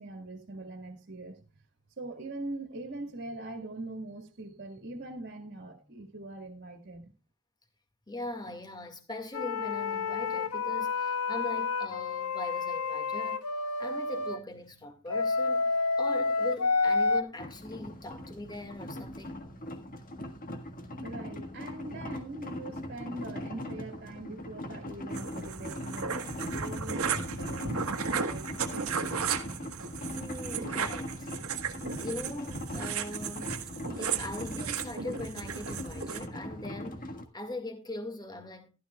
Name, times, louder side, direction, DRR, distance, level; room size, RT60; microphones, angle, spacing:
voice 1, 0.0-1.4 2.0-7.1 21.0-28.5, right 2 dB, 50° right, 1.8 m, -42 dB
voice 2, 8.1-13.4 13.8-15.6 16.0-19.5 30.1-31.3 32.0-38.7, left 2 dB, 20° left, 1.9 m, -41 dB
sound 1, 9.3-14.4 15.1-17.2, left 4 dB, 85° left, 1.2 m, -29 dB
sound 2, 17.4-37.2, left 1 dB, 40° left, 1.7 m, -41 dB
sound 3, 25.1-36.3, right 6 dB, 70° right, 1.4 m, -35 dB
15.5 x 12.5 x 2.3 m
head